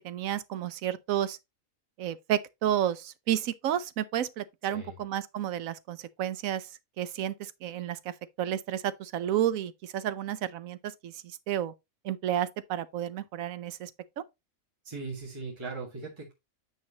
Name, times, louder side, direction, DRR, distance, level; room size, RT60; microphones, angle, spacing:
voice 1, 0.0-1.4 2.0-6.7 7.0-11.7 12.0-13.9 14.2-14.3, right 11 dB, 75° right, 1.1 m, -31 dB
voice 2, 14.8-16.3, right 3 dB, 20° right, 1.7 m, -39 dB
9.2 x 5.4 x 2.9 m
omnidirectional pair, 1.5 m